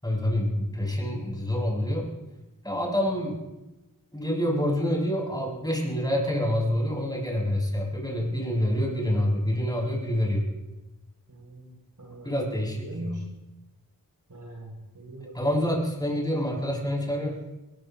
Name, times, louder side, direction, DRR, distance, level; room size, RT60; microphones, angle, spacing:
voice 1, 0.0-2.1 2.6-3.4 4.1-10.4 12.2-13.1 15.3-17.4, equal, 10° left, -4 dB, 7.2 m, -27 dB
voice 2, 11.3-11.7 12.0-12.4 12.7-13.3 14.3-15.6, right 1 dB, 60° right, -1 dB, 7.1 m, -41 dB
22.0 x 20.5 x 3.1 m, 1.0 s
wide cardioid pair, 50°, 36 cm